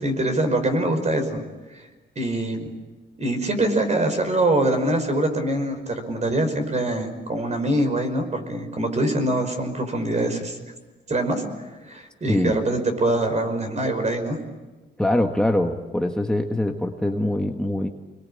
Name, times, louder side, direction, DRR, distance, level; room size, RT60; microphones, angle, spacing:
voice 1, 0.0-1.4 1.7-1.8 2.2-2.7 3.2-10.6 11.1-11.4 11.8-14.4, right 1 dB, 35° right, 6 dB, 5.3 m, -24 dB
voice 2, 12.3-12.6 15.0-17.9, left 1 dB, 5° left, 2 dB, 1.5 m, -23 dB
27.5 x 22.0 x 8.8 m, 1.2 s
cardioid pair, 110°, 20 cm